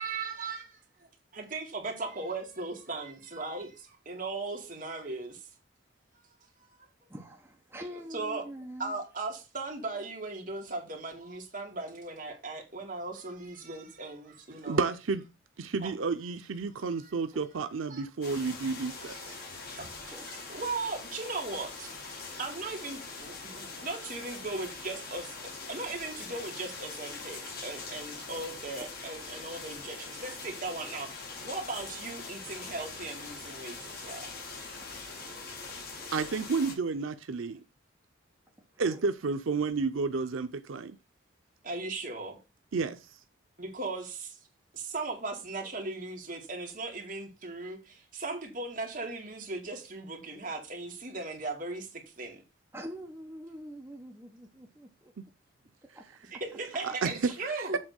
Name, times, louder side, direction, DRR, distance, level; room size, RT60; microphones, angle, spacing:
voice 1, 0.0-5.5 8.1-8.4 8.8-14.9 15.8-15.9 17.0-17.1 17.9-18.0 19.0-21.9 22.4-25.4 25.7-34.3 41.6-42.4 43.6-44.4 44.7-52.4 56.3-57.8, right 3 dB, 45° right, 2.0 m, -38 dB
voice 2, 7.1-9.0 20.1-20.3 27.6-27.8 35.1-35.5 35.9-36.1 38.7-39.0 52.7-55.1 55.9-56.0, equal, 10° right, 1.2 m, -45 dB
voice 3, 14.7-15.2 15.6-19.4 36.1-37.6 38.8-41.0 42.7-43.0 56.8-57.3 57.6-57.7, right 4 dB, 85° right, 0.6 m, -31 dB
sound 1, 18.2-36.8, left 4 dB, 50° left, 1.7 m, -43 dB
7.6 x 3.6 x 6.4 m
head